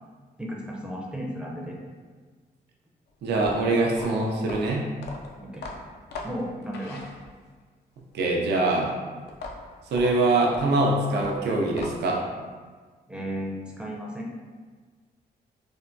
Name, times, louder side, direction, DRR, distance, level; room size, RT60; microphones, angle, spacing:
voice 1, 0.4-1.8 5.4-5.7 6.2-7.0 13.1-14.4, equal, 5° right, -3 dB, 0.4 m, -34 dB
voice 2, 3.2-4.8 8.1-8.9 9.9-12.2, right 2 dB, 85° right, -1 dB, 0.5 m, -23 dB
sound 1, 3.3-7.6 9.3-12.2, left 3 dB, 80° left, 0.4 m, -40 dB
3.3 x 2.2 x 2.6 m, 1.5 s
cardioid pair, 110°, 17 cm